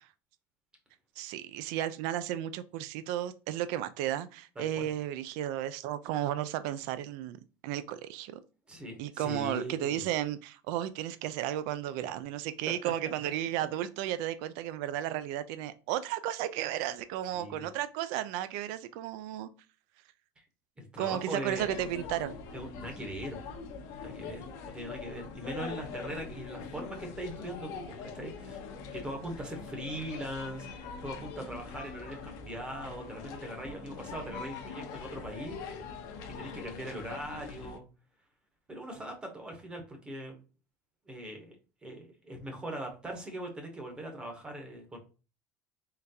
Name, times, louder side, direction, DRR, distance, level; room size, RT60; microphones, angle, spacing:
voice 1, 1.2-7.4 7.6-8.4 9.0-19.5 21.0-22.3, right 12 dB, 65° right, 0.3 m, -34 dB
voice 2, 4.6-4.9 8.7-10.0 17.3-17.6 20.4-20.5 20.8-21.8 22.5-23.6 24.0-28.6 28.9-35.6 36.4-37.8 38.7-40.3 41.1-41.6 41.8-45.0, right 1 dB, 15° right, 0.8 m, -41 dB
sound 1, 21.4-37.8, left 5 dB, 55° left, 0.7 m, -43 dB
3.7 x 3.4 x 2.7 m
cardioid pair, 170°, 7 cm